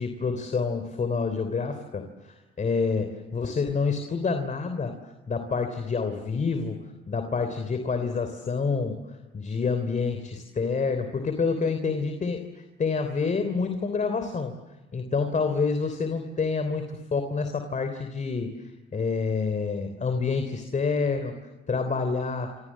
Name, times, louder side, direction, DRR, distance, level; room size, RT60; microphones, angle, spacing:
voice 1, 0.0-4.9 5.3-6.8 7.1-9.0 9.3-14.6 14.9-18.5 18.9-21.4 21.7-22.5, left 4 dB, 40° left, 7 dB, 3.4 m, -28 dB
29.5 x 26.5 x 7.5 m, 1.2 s
cardioid pair, 90°, 20 cm